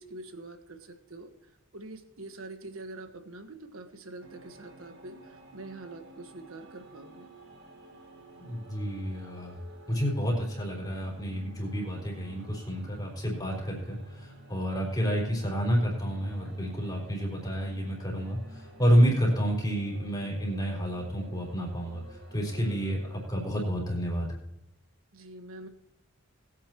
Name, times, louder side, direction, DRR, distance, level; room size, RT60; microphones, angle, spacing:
voice 1, 0.0-7.4 25.1-25.7, right 2 dB, 85° right, 7 dB, 1.4 m, -45 dB
sound 1, 4.2-23.3, right 1 dB, 55° right, 2.2 m, -52 dB
voice 2, 8.4-9.6 9.9-24.3, equal, 20° left, -2 dB, 4.0 m, -29 dB
20.5 x 9.2 x 3.0 m, 0.85 s
head